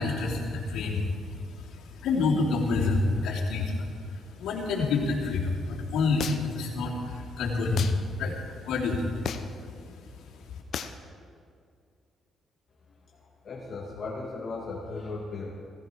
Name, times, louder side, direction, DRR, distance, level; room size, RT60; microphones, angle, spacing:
voice 1, 0.0-10.6, left 3 dB, 85° left, -3 dB, 3.0 m, -29 dB
sound 1, 6.2-6.6 7.8-8.0 9.2-9.6 10.7-11.0, left 8 dB, 65° left, 0.8 m, -33 dB
voice 2, 13.4-15.5, left 3 dB, 45° left, -4 dB, 2.3 m, -36 dB
17.0 x 15.5 x 4.6 m, 2.3 s
cardioid pair, 90°, 0 cm